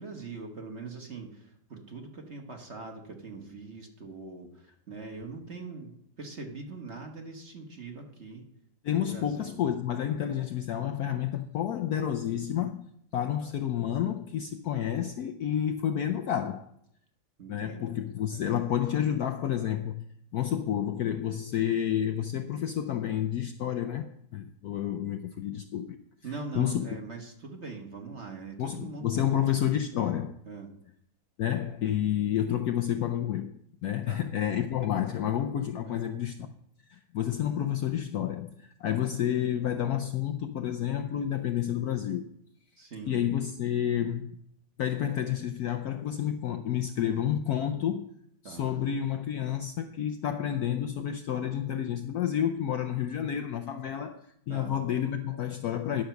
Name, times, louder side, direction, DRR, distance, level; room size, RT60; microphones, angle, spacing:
voice 1, 0.0-8.4 9.0-9.6 17.4-18.0 18.3-18.5 26.2-29.4 29.7-30.0 30.5-30.7 34.1-34.2 34.9-35.2 35.8-36.1 42.8-43.2 48.4-48.8 54.5-54.7, right 4 dB, 40° right, 1.3 m, -42 dB
voice 2, 8.8-12.9 13.1-16.7 17.5-20.1 20.3-26.0 26.3-26.9 28.6-30.3 31.4-33.5 33.8-36.5 36.9-42.3 43.1-44.4 44.8-48.1 48.4-56.0, left 10 dB, 70° left, 0.9 m, -30 dB
10.5 x 6.6 x 5.8 m
omnidirectional pair, 2.1 m